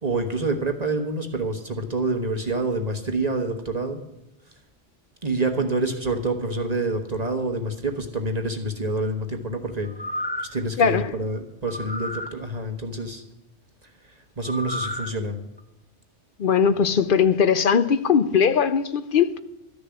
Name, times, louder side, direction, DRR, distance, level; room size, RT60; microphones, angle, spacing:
voice 1, 0.0-4.0 5.2-9.9 10.4-13.2 14.4-15.4, right 2 dB, 35° right, 1.2 m, -27 dB
sound 1, 9.8-10.6 11.7-12.3 14.4-15.1 15.6-15.7, left 1 dB, 10° left, 0.5 m, -32 dB
voice 2, 10.8-11.1 16.4-19.4, left 7 dB, 55° left, 0.7 m, -20 dB
13.0 x 6.8 x 9.6 m
omnidirectional pair, 1.2 m